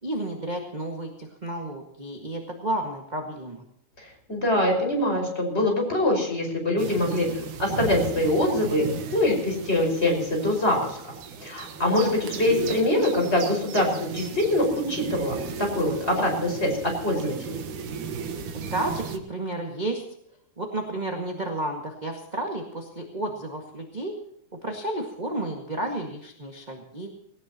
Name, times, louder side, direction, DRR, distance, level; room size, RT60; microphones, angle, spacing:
voice 1, 0.0-3.6 18.5-20.0 20.6-24.2 24.5-27.1, right 1 dB, 20° right, 2 dB, 1.3 m, -32 dB
voice 2, 4.3-7.3 7.6-8.9 9.1-11.1 11.4-17.6, left 1 dB, 20° left, 1 dB, 5.6 m, -24 dB
sound 1, 6.8-19.2, right 6 dB, 90° right, 3.0 m, -35 dB
19.0 x 18.5 x 2.9 m, 0.75 s
omnidirectional pair, 3.5 m